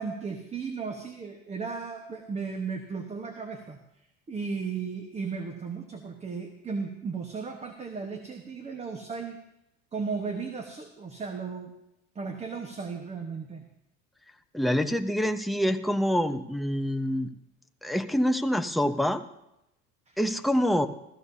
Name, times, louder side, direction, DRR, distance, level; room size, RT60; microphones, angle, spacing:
voice 1, 0.0-3.8 4.3-9.4 9.9-11.7 12.1-13.6 20.1-20.2, right 5 dB, 20° right, 5 dB, 1.2 m, -35 dB
voice 2, 14.5-17.3 17.8-19.2 20.2-20.9, equal, ahead, 6 dB, 0.7 m, -26 dB
15.0 x 15.0 x 2.8 m, 0.86 s
cardioid pair, 120°, 30 cm